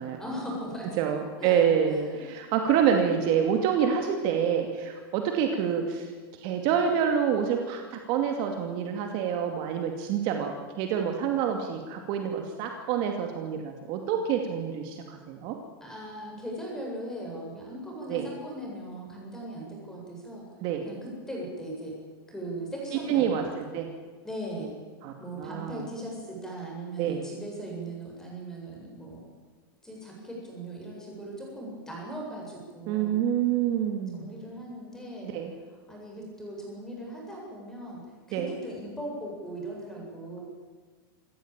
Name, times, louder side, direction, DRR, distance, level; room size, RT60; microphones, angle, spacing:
voice 1, 0.2-1.0 1.4-2.3 15.8-20.4 20.8-21.9 22.3-23.5 24.2-24.7 25.2-29.3 29.8-33.2 34.1-35.3 35.9-38.0 38.3-40.4, right 1 dB, 5° left, -2 dB, 7.8 m, -39 dB
voice 2, 1.0-6.1 6.4-15.6 18.1-18.3 20.6-20.8 23.1-23.9 25.0-25.9 27.0-27.2 32.9-34.3 35.2-35.5 38.3-38.5, right 8 dB, 40° right, 4 dB, 2.5 m, -27 dB
27.0 x 14.0 x 9.0 m, 1.5 s
supercardioid pair, 150°, 12 cm